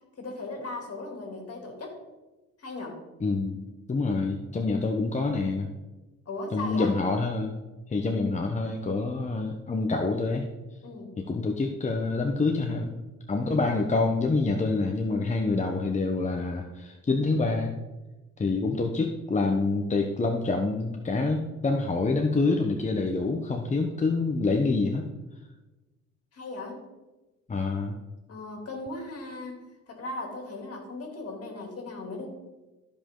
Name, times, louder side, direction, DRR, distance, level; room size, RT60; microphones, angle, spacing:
voice 1, 0.2-2.0 2.6-3.0 6.3-6.9 10.8-11.2 26.3-26.8 28.3-29.5 29.9-32.3, left 2 dB, 50° left, 1 dB, 2.9 m, -37 dB
voice 2, 3.2-5.7 6.5-7.6 7.9-10.5 11.2-12.9 13.3-17.7 18.4-25.1 27.5-28.0, left 3 dB, 25° left, 3 dB, 0.8 m, -27 dB
14.0 x 5.2 x 3.8 m, 1.1 s
cardioid pair, 90°, 30 cm